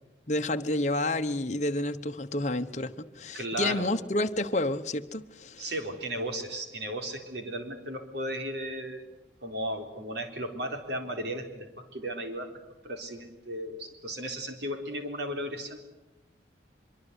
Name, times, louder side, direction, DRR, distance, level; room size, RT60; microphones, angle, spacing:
voice 1, 0.3-5.7, left 1 dB, 40° left, 1.1 m, -30 dB
voice 2, 3.3-3.9 5.6-9.0 9.4-12.5 12.8-15.8, right 1 dB, 65° right, 3.8 m, -35 dB
24.0 x 24.0 x 8.2 m
head